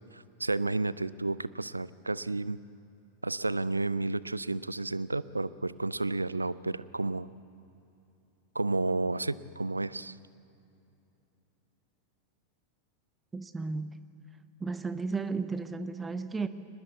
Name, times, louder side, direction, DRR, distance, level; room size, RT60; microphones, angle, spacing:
voice 1, 0.1-2.6 3.2-7.3 8.5-10.2, right 2 dB, 80° right, 0.5 m, -31 dB
voice 2, 13.3-13.9 14.6-16.5, right 4 dB, 15° right, 0.9 m, -34 dB
22.5 x 20.0 x 8.3 m
figure-of-eight pair, 90°, 0 cm